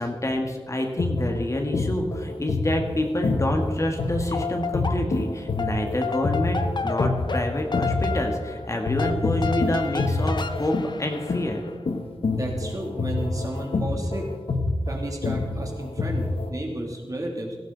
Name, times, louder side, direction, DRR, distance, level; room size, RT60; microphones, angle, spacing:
voice 1, 0.0-11.6, left 1 dB, 35° left, 2 dB, 1.8 m, -27 dB
sound 1, 0.8-8.5 8.9-16.5, left 3 dB, 80° left, 1.3 m, -27 dB
sound 2, 4.1-5.3 5.6-11.7, left 5 dB, 55° left, 0.9 m, -32 dB
voice 2, 12.3-14.3 14.9-17.6, right 1 dB, 40° right, 0 dB, 2.9 m, -32 dB
17.5 x 14.5 x 4.0 m, 1.4 s
wide cardioid pair, 95°, 9 cm